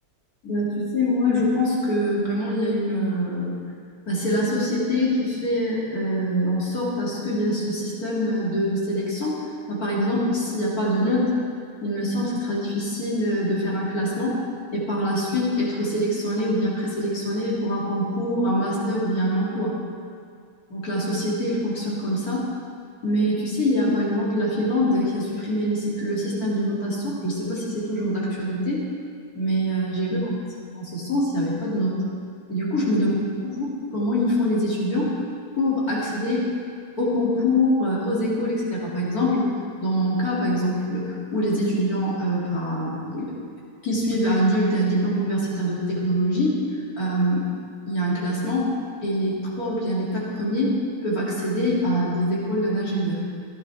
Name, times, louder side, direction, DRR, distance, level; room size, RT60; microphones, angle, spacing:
voice 1, 0.4-3.6 4.1-9.4 9.7-11.3 11.8-14.4 14.7-19.7 20.7-22.5 23.0-28.8 29.3-30.2 30.7-32.0 32.5-33.1 33.4-33.7 33.9-35.1 35.6-36.5 37.0-39.4 39.8-43.3 43.8-46.6 47.0-47.4 47.9-48.7 49.0-50.7 51.0-53.2, equal, 40° left, -7 dB, 3.1 m, -24 dB
15.5 x 11.0 x 3.5 m, 2.2 s
omnidirectional pair, 2.4 m